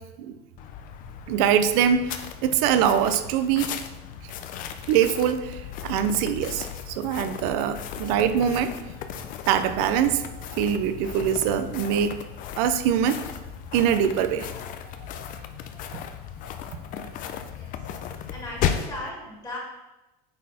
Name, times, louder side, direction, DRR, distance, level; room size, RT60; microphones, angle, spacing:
sound 1, 0.6-19.0, left 9 dB, 40° left, 0.6 m, -36 dB
voice 1, 1.3-3.7 4.9-8.8 9.4-12.1 12.6-13.2 13.7-14.5, right 8 dB, 65° right, 9 dB, 0.6 m, -23 dB
voice 2, 17.4-17.7 18.3-19.6, left 1 dB, 20° left, -3 dB, 2.2 m, -37 dB
8.8 x 4.2 x 4.2 m, 1.0 s
supercardioid pair, 135°, 21 cm